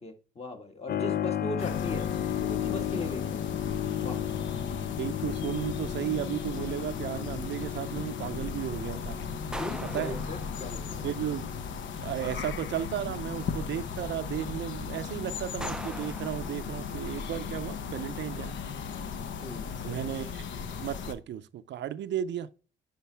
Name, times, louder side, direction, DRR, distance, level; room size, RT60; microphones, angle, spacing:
voice 1, 0.0-2.1 2.4-3.7 4.0-4.2 9.6-11.1 19.4-20.0, left 2 dB, 30° left, 1.8 m, -38 dB
Keyboard (musical), 0.9-13.3, left 10 dB, 55° left, 0.5 m, -35 dB
sound 1, 1.6-21.1, left 6 dB, 70° left, 0.9 m, -37 dB
voice 2, 4.7-9.2 9.9-10.2 11.0-11.5 12.0-18.7 19.8-20.4 20.8-22.5, right 11 dB, 65° right, 0.5 m, -34 dB
sound 2, 6.5-7.4 9.5-11.0 15.6-17.1, right 1 dB, 5° right, 0.4 m, -43 dB
10.0 x 5.2 x 3.4 m
cardioid pair, 90°, 20 cm